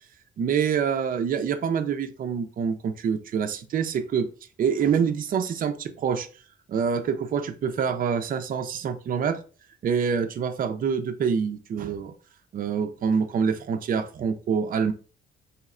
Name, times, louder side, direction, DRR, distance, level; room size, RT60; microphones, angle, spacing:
voice 1, 0.4-4.3 4.6-6.3 6.7-9.4 9.8-12.1 12.5-14.9, right 6 dB, 45° right, 8 dB, 0.4 m, -26 dB
3.1 x 2.8 x 2.4 m, 0.37 s
cardioid pair, 90°, 20 cm